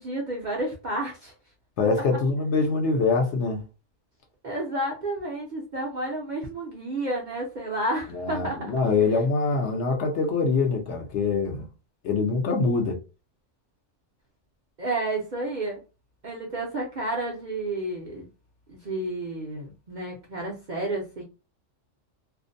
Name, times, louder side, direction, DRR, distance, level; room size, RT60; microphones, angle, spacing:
voice 1, 0.0-1.3 4.4-8.7 14.8-15.8 16.2-18.3 18.7-21.2, right 1 dB, 55° right, 0.5 m, -31 dB
voice 2, 1.8-3.6 8.1-11.6 12.0-13.0, left 4 dB, 65° left, 0.9 m, -24 dB
2.5 x 2.1 x 2.5 m
omnidirectional pair, 1.3 m